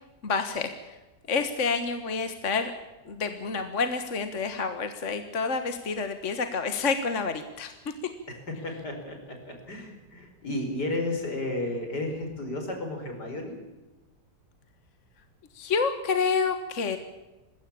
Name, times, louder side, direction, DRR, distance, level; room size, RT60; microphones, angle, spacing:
voice 1, 0.2-0.7 1.3-2.7 3.1-7.9 15.6-17.0, left 5 dB, 45° left, 8 dB, 1.7 m, -28 dB
voice 2, 8.3-13.6, left 2 dB, 70° left, 4 dB, 5.4 m, -33 dB
21.0 x 16.5 x 8.7 m, 1.1 s
omnidirectional pair, 1.8 m